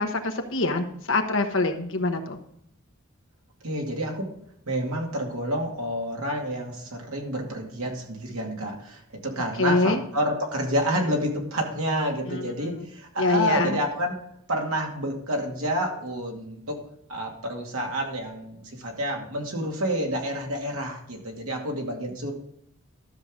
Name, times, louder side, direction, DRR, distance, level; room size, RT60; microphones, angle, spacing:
voice 1, 0.0-2.4 9.6-10.0 12.2-12.5 12.8-12.9 13.2-13.8, left 3 dB, 60° left, 4 dB, 1.2 m, -25 dB
voice 2, 3.6-4.3 4.7-14.1 14.5-16.8 17.1-22.3, equal, 75° right, 0 dB, 2.2 m, -29 dB
12.5 x 6.7 x 3.8 m, 0.72 s
head